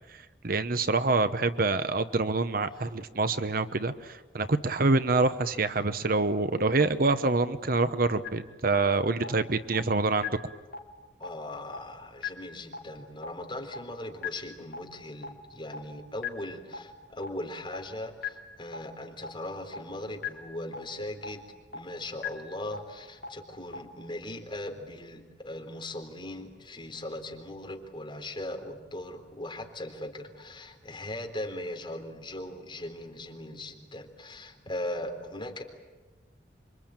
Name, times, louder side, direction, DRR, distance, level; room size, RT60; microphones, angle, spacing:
voice 1, 0.1-10.3, right 3 dB, 50° right, 11 dB, 1.0 m, -26 dB
sound 1, 8.2-8.3 8.7-8.8 9.2-9.3 9.7-9.8 10.2-10.3 10.7-10.8 11.2-11.3 11.7-11.8 12.2-12.3 12.7-12.8 13.2-13.3 13.7-13.8 14.2-14.3 14.7-14.8 15.2-15.3 15.7-15.8 16.2-16.3 16.7-16.8 17.2-17.3 17.7-17.8 18.2-18.3 18.7-18.8 19.2-19.3 19.7-19.8 20.2-20.3 20.7-20.8 21.2-21.3 21.7-21.8 22.2-22.3 22.7-22.8 23.2-23.3 23.7-23.8, left 7 dB, 55° left, 3.7 m, -34 dB
voice 2, 11.2-21.4 21.7-35.6, left 1 dB, 25° left, 3 dB, 3.8 m, -39 dB
27.5 x 24.5 x 9.0 m, 1.3 s
head